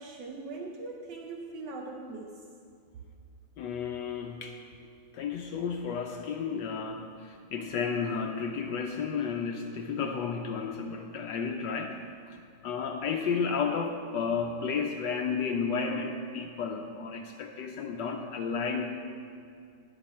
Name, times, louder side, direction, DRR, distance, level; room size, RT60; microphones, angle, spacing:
voice 1, 0.0-2.4, right 3 dB, 70° right, 1 dB, 1.4 m, -41 dB
voice 2, 3.6-4.6 5.1-12.0 12.3-12.4 12.6-18.8, left 5 dB, 75° left, 3 dB, 1.3 m, -32 dB
17.5 x 6.1 x 4.3 m, 2.3 s
omnidirectional pair, 2.0 m